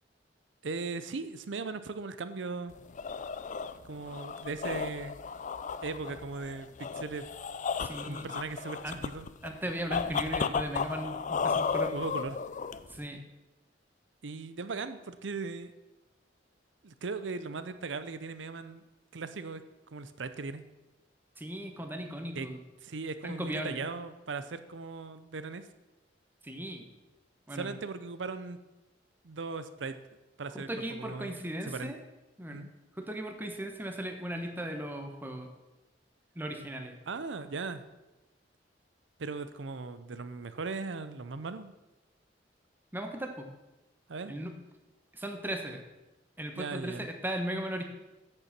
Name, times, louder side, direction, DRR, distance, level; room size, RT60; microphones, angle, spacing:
voice 1, 0.6-2.8 3.8-5.2 5.8-7.3 8.0-9.3 11.9-12.4 14.2-15.7 16.8-18.8 19.1-19.6 19.9-20.6 22.3-22.5 22.8-25.7 27.5-28.6 29.2-31.4 31.6-31.9 32.5-32.7 37.1-37.8 39.2-41.7 44.1-44.3 46.6-47.1, right 4 dB, 75° right, 11 dB, 0.7 m, -38 dB
sound 1, 2.7-13.1, left 5 dB, 45° left, 0.4 m, -34 dB
voice 2, 7.8-8.3 8.8-9.0 9.4-11.9 12.9-13.2 21.4-22.6 23.2-23.8 26.4-26.9 27.5-27.7 30.5-32.0 32.4-32.6 32.9-35.5 36.3-37.0 42.9-43.5 44.3-44.6 45.1-45.8 46.4-47.8, right 1 dB, 10° right, 5 dB, 1.1 m, -37 dB
8.3 x 7.0 x 5.9 m, 1.0 s
head